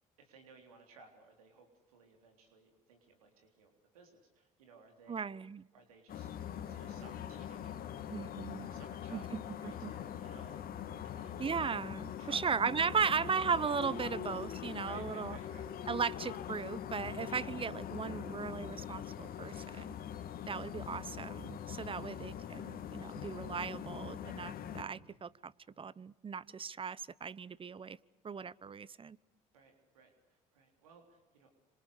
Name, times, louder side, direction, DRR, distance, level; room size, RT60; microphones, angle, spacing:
voice 1, 0.2-5.3 5.7-11.4 12.2-13.1 14.8-15.7 20.5-20.6 21.9-22.2 29.5-31.5, right 4 dB, 90° right, 4 dB, 3.7 m, -59 dB
voice 2, 5.1-5.6 8.1-8.7 9.1-9.9 11.4-15.4 15.9-19.9 20.5-28.0 28.2-29.2, right 6 dB, 30° right, 21 dB, 0.9 m, -37 dB
sound 1, 6.1-24.8, left 9 dB, 55° left, 2.5 m, -43 dB
27.0 x 26.0 x 6.6 m, 1.0 s
hypercardioid pair, 65°, 18 cm